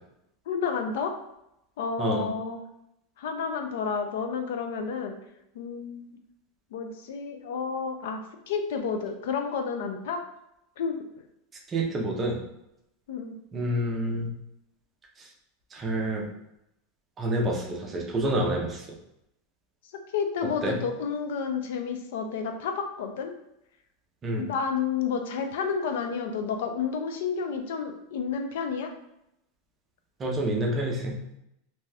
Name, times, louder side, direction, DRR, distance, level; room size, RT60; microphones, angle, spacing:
voice 1, 0.5-1.1 1.8-2.6 3.2-5.2 5.5-6.0 6.7-10.2 10.8-11.0 13.1-13.3 19.8-23.3 24.3-28.9, left 6 dB, 75° left, 5 dB, 0.4 m, -30 dB
voice 2, 11.7-12.4 13.5-14.3 15.2-15.3 15.7-16.3 17.2-18.9 20.6-20.8 24.2-24.5 30.2-31.2, right 1 dB, 20° right, 0 dB, 0.5 m, -28 dB
2.6 x 2.2 x 3.2 m, 0.82 s
supercardioid pair, 165°, 0 cm